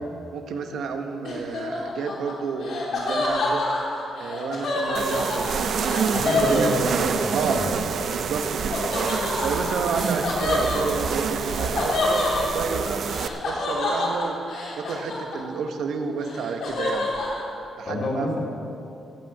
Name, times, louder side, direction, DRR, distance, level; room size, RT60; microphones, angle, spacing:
voice 1, 0.3-3.7 4.2-6.0 6.4-6.8 7.3-7.7 8.1-8.8 9.4-13.1 13.4-14.4 14.8-17.1 17.8-18.3, right 5 dB, 75° right, 5 dB, 1.1 m, -30 dB
Laughter, 1.2-7.3 8.7-15.7 16.0-17.4, left 2 dB, 65° left, 3.1 m, -28 dB
sound 1, 4.9-13.3, right 6 dB, 55° right, 0.6 m, -27 dB
voice 2, 6.1-7.8 17.9-18.4, left 1 dB, 40° left, -2 dB, 2.7 m, -29 dB
14.5 x 6.3 x 8.4 m, 2.7 s
wide cardioid pair, 165°, 0 cm